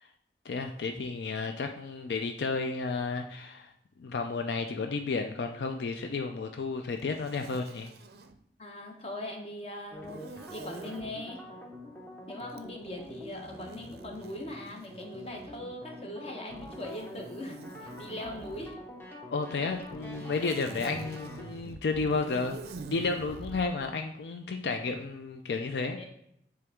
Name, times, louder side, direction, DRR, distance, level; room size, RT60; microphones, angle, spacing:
voice 1, 0.5-3.7 4.0-7.9 19.3-22.6 22.9-26.0, left 4 dB, 75° left, 5 dB, 0.4 m, -32 dB
Zipper (clothing), 7.0-8.4 10.0-11.1 12.5-15.7 16.5-18.8 19.7-23.7, right 3 dB, 60° right, 0.4 m, -46 dB
voice 2, 8.6-11.4 12.3-18.8 26.0-26.1, left 1 dB, 35° left, 1 dB, 1.0 m, -41 dB
sound 1, 9.9-21.5, left 1 dB, 10° left, 0.7 m, -46 dB
7.7 x 3.4 x 3.5 m, 0.73 s
head